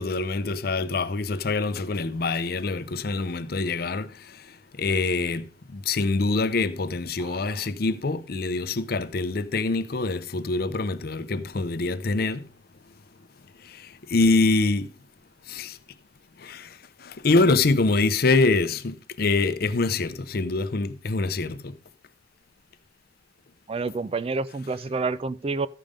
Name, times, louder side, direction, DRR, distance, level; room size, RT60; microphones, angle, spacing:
voice 1, 0.0-4.4 4.8-12.5 13.6-14.9 15.5-15.8 16.4-21.8, left 3 dB, 60° left, 0.6 m, -25 dB
voice 2, 7.2-7.6 10.7-10.8 23.7-25.7, right 3 dB, 35° right, 0.4 m, -29 dB
13.0 x 5.4 x 5.1 m
head